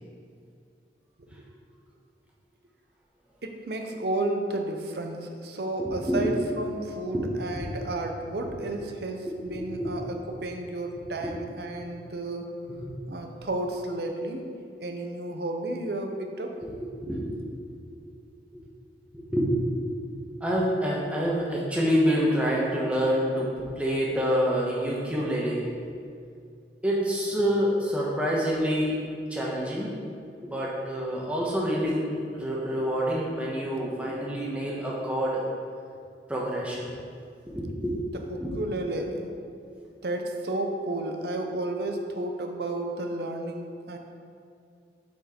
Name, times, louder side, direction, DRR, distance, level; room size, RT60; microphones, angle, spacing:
voice 1, 3.4-12.5 13.1-14.4 14.8-16.6 38.1-39.3 40.0-44.0, right 2 dB, 60° right, 3 dB, 0.7 m, -32 dB
voice 2, 5.8-6.2 7.1-7.2 7.6-7.7 9.8-9.9 11.2-11.3 16.6-16.7 17.0-17.4 18.5-18.6 19.1-19.8 20.4-25.7 26.8-29.0 29.3-29.9 30.4-35.4 36.3-36.9 37.5-38.0 38.4-38.5, equal, 5° right, -4 dB, 1.1 m, -27 dB
8.4 x 4.5 x 4.3 m, 2.4 s
head